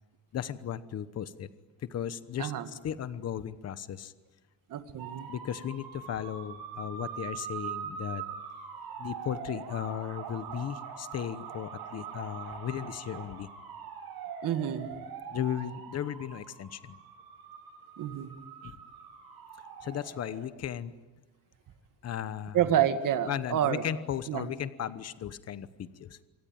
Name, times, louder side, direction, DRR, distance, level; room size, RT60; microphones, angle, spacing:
voice 1, 0.3-1.5 1.8-4.1 5.3-8.2 9.0-13.5 15.3-17.0 18.6-18.8 19.8-20.9 22.0-22.7 23.3-26.2, left 9 dB, 45° left, 14 dB, 1.1 m, -36 dB
voice 2, 4.7-5.3 14.4-14.9 18.0-18.3 22.5-23.8 24.3-24.5, right 10 dB, 60° right, 8 dB, 2.1 m, -28 dB
sound 1, 5.0-20.5, right 7 dB, 80° right, 5.4 m, -43 dB
27.5 x 24.0 x 8.8 m, 1.2 s
cardioid pair, 165°, 37 cm